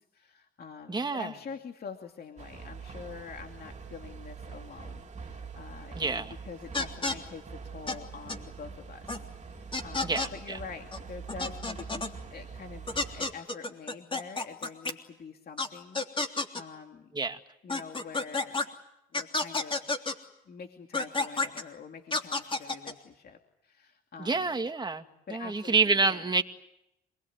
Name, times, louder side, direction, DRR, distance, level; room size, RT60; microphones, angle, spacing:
voice 1, 0.0-12.0 12.3-17.2 17.6-18.6 19.1-19.8 20.5-24.5 25.3-26.3, left 5 dB, 50° left, 4 dB, 2.6 m, -46 dB
voice 2, 0.9-1.3 6.0-6.3 10.0-10.6 17.1-17.4 24.2-25.1 25.3-26.4, right 4 dB, 20° right, 6 dB, 2.2 m, -28 dB
sound 1, 2.4-13.3, right 5 dB, 35° right, 3.3 m, -44 dB
sound 2, 6.7-7.2 7.9-8.0 8.3-8.4 9.1-9.2 9.7-10.3 10.9-11.0 11.3-12.1 12.9-14.9 15.6-15.7 15.9-16.6 17.7-18.7 19.1-20.1 20.9-21.6 22.1-22.9, left 3 dB, 25° left, 3.3 m, -30 dB
27.0 x 21.0 x 9.7 m, 0.84 s
cardioid pair, 90°, 20 cm